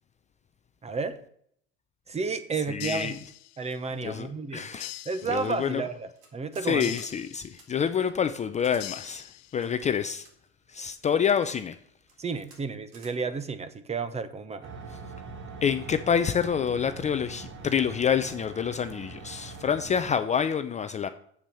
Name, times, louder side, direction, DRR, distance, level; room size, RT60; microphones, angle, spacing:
voice 1, 0.8-1.1 2.1-3.1 3.6-4.7 5.1-6.9 12.2-14.7, right 4 dB, 20° right, 12 dB, 1.0 m, -32 dB
voice 2, 2.7-3.2 4.0-4.3 4.5-4.9 5.3-5.8 6.6-10.3 10.7-11.8 15.6-21.1, left 7 dB, 25° left, 10 dB, 0.5 m, -27 dB
sound 1, 2.8-3.9 4.8-5.9 6.8-7.9 8.8-9.8, left 18 dB, 55° left, 0.8 m, -43 dB
sound 2, 6.2-6.7 6.9-7.1 7.5-7.7 8.6-8.8 9.6-10.3 11.0-11.5 12.0-12.2 12.4-12.6 12.9-13.1, right 3 dB, 75° right, 3.8 m, -54 dB
sound 3, 14.6-20.1, right 4 dB, 40° right, 1.5 m, -43 dB
7.4 x 7.3 x 6.9 m, 0.65 s
supercardioid pair, 110°, 31 cm